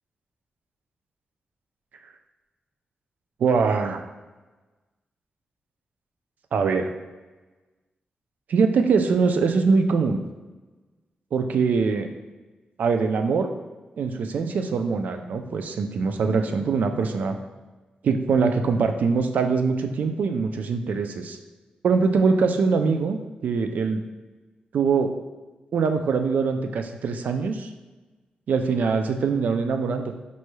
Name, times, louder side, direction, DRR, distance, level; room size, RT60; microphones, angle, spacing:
voice 1, 3.4-4.0 6.5-6.9 8.5-10.2 11.3-12.1 12.8-13.5 14.0-17.4 18.0-21.4 21.8-23.2 23.4-24.0 24.7-25.1 25.7-27.7 28.5-30.1, right 5 dB, 70° right, 6 dB, 0.3 m, -23 dB
5.3 x 3.1 x 2.2 m, 1.2 s
wide cardioid pair, 165°, 3 cm